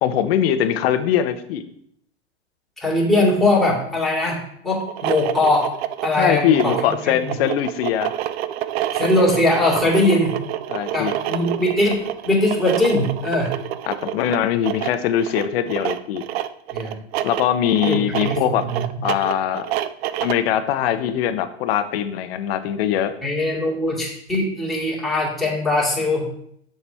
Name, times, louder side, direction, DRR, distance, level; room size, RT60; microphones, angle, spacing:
voice 1, 0.0-1.7 6.1-8.1 10.7-11.1 13.9-16.2 17.2-18.6 19.0-19.7 20.2-23.1, left 10 dB, 60° left, 10 dB, 0.9 m, -21 dB
voice 2, 2.8-5.7 6.0-7.4 8.9-10.3 10.9-13.5 16.7-17.0 17.8-18.8 23.2-26.3, left 1 dB, ahead, -6 dB, 2.6 m, -21 dB
sound 1, 4.8-20.5, right 12 dB, 65° right, 0.6 m, -28 dB
7.1 x 5.8 x 3.5 m, 0.70 s
hypercardioid pair, 120°, 34 cm